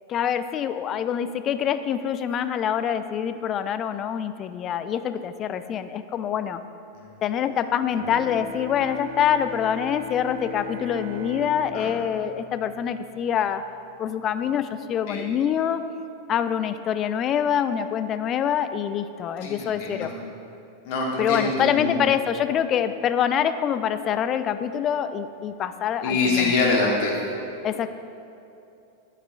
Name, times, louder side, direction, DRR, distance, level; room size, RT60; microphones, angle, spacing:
voice 1, 0.1-6.6 7.2-13.6 14.0-15.8 16.3-20.1 21.2-26.5 27.6-27.9, left 9 dB, 30° left, 11 dB, 0.3 m, -25 dB
Bowed string instrument, 7.9-13.5, left 1 dB, 60° right, 0.6 m, -39 dB
voice 2, 19.4-20.1 20.8-22.0 26.0-27.2, left 3 dB, 45° left, -3 dB, 1.5 m, -24 dB
10.0 x 7.3 x 2.2 m, 2.7 s
figure-of-eight pair, 90°, 0 cm